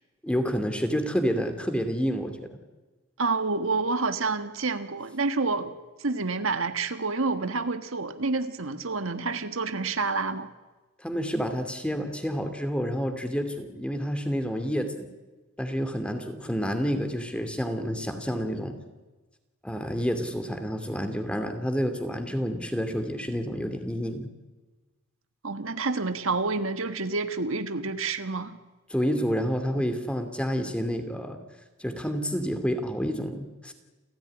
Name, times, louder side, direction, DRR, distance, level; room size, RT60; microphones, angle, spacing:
voice 1, 0.2-2.6 11.0-15.1 15.6-18.8 19.6-24.3 28.9-31.4 31.8-33.7, equal, 5° left, 7 dB, 2.5 m, -29 dB
voice 2, 3.2-5.7 6.0-10.5 25.4-28.5 29.7-29.8, right 3 dB, 70° right, 9 dB, 1.5 m, -28 dB
29.0 x 15.5 x 10.0 m, 1.2 s
head